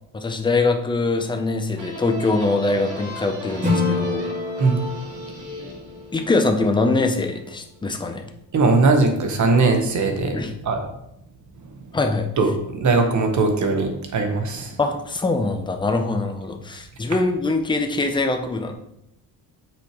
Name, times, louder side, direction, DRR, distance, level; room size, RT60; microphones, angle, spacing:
voice 1, 0.1-4.3 6.1-8.3 10.3-10.5 11.9-12.3 14.8-18.7, left 3 dB, 10° left, 5 dB, 0.5 m, -23 dB
sound 1, 1.8-7.2, equal, 80° right, 2.8 m, -37 dB
Acoustic guitar / Strum, 3.6-6.8, left 3 dB, 15° right, 2.5 m, -27 dB
voice 2, 8.5-10.3 10.6-10.8 12.4-14.7, right 3 dB, 45° right, 4 dB, 1.1 m, -19 dB
8.1 x 6.3 x 3.0 m, 0.81 s
cardioid pair, 170°, 42 cm